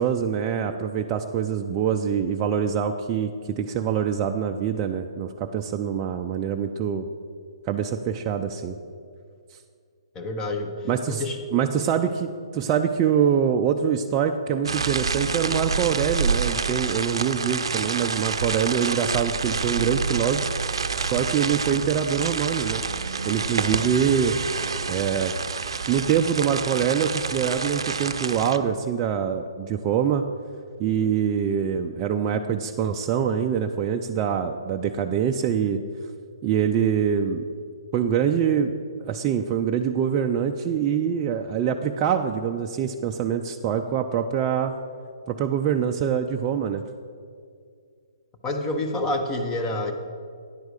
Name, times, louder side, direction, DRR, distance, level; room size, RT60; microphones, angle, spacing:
voice 1, 0.0-7.1 7.7-8.8 10.8-11.2 11.5-20.4 21.0-22.8 23.2-24.4 24.9-25.3 25.9-30.2 30.8-35.8 36.4-37.4 37.9-38.7 39.1-44.7 45.3-46.8, right 8 dB, 25° right, 3 dB, 0.3 m, -24 dB
voice 2, 10.1-10.7 11.1-11.4 48.4-49.9, left 1 dB, 20° left, 5 dB, 0.8 m, -27 dB
sound 1, 14.7-28.6, right 5 dB, 80° right, 0.5 m, -28 dB
9.8 x 4.6 x 6.5 m, 2.2 s
hypercardioid pair, 145°, 3 cm